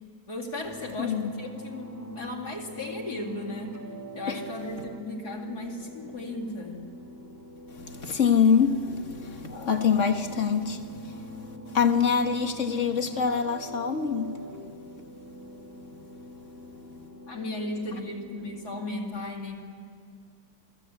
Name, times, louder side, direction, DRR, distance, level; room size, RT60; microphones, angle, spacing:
voice 1, 0.3-6.9 17.3-19.6, left 2 dB, 65° left, 3.0 m, -36 dB
sound 1, 0.6-18.9, right 1 dB, 10° right, 2.2 m, -44 dB
voice 2, 1.0-1.3 4.3-4.4 7.7-14.8 15.9-16.0, left 6 dB, 45° left, 1.6 m, -26 dB
28.0 x 18.5 x 8.5 m
omnidirectional pair, 1.9 m